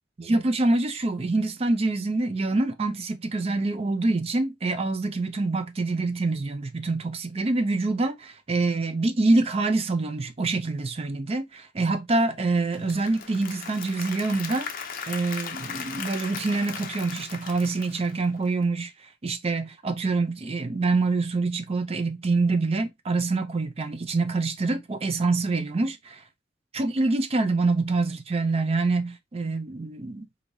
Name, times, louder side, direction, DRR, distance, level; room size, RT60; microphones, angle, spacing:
voice 1, 0.2-14.7 15.1-18.9 19.2-26.2 26.7-30.3, right 3 dB, 30° right, 0.4 m, -26 dB
Applause / Crowd, 12.6-18.6, left 6 dB, 45° left, 0.6 m, -38 dB
4.6 x 2.7 x 2.6 m
head